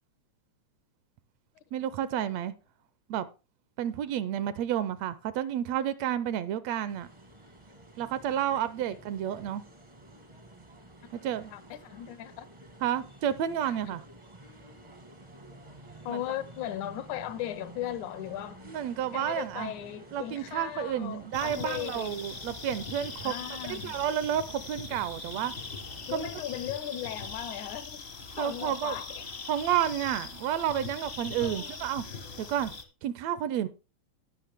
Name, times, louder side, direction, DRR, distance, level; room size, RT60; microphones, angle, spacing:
voice 1, 1.7-2.5 3.1-3.3 3.8-7.1 8.0-9.6 11.1-11.5 12.8-14.0 16.1-16.2 18.7-19.7 20.1-25.5 26.1-26.3 28.4-29.0 29.5-32.1 32.4-32.7 33.0-33.7, right 10 dB, 75° right, 1.7 m, -31 dB
sound 1, 6.9-26.4, right 1 dB, 35° right, 0.5 m, -51 dB
voice 2, 11.5-12.5 16.1-18.6 19.1-22.1 23.2-24.0 26.1-28.0 28.4-29.3 31.4-31.8, left 12 dB, 85° left, 2.2 m, -37 dB
sound 2, 21.3-32.8, left 4 dB, 65° left, 0.6 m, -41 dB
17.5 x 6.1 x 3.5 m
omnidirectional pair, 3.3 m